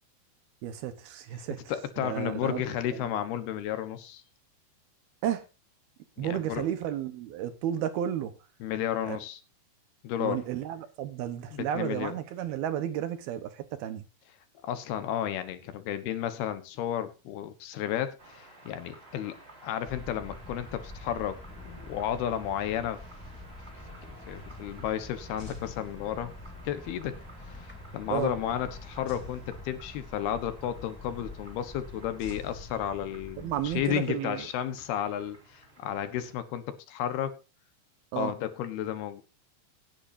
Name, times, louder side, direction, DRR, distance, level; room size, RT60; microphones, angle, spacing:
voice 1, 0.6-1.6 2.0-3.1 5.2-5.4 6.2-8.3 9.1-9.2 10.2-14.0 28.1-28.3 33.4-34.5 38.1-38.3, right 11 dB, 70° right, 2.9 m, -32 dB
voice 2, 1.7-4.2 6.2-6.6 8.6-9.4 10.0-10.4 11.5-12.1 14.6-19.4 19.6-23.0 24.3-26.3 26.6-27.2 27.4-37.4 38.2-39.2, left 10 dB, 70° left, 3.0 m, -33 dB
sound 1, 18.2-36.3, right 2 dB, 15° right, 3.4 m, -54 dB
sound 2, 19.9-34.0, left 1 dB, 5° left, 1.8 m, -46 dB
sound 3, 25.4-26.6 29.1-30.3 32.2-33.5, left 4 dB, 40° left, 6.4 m, -47 dB
17.0 x 10.0 x 2.7 m
omnidirectional pair, 4.9 m